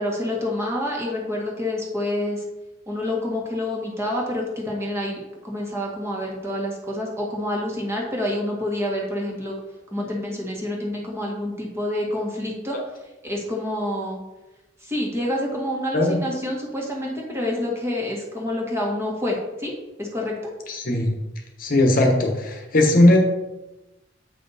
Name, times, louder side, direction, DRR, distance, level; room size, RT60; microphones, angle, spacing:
voice 1, 0.0-2.4 2.9-9.6 9.9-12.8 13.2-14.2 14.8-19.7 20.0-20.3, left 1 dB, 15° right, -2 dB, 1.7 m, -27 dB
voice 2, 20.7-21.1 21.6-23.2, left 1 dB, 45° left, 2 dB, 1.2 m, -18 dB
8.2 x 5.7 x 4.2 m, 1.0 s
head